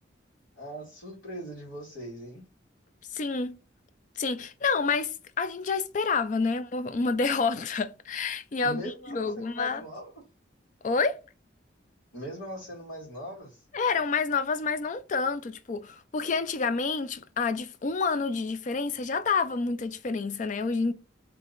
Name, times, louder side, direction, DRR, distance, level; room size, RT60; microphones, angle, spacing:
voice 1, 0.5-2.4 8.6-10.1 12.1-13.6, equal, 90° left, 1.7 m, -40 dB
voice 2, 3.1-3.6 4.2-9.8 10.8-11.2 13.7-20.9, left 4 dB, 40° left, 0.3 m, -28 dB
3.6 x 2.8 x 3.8 m
head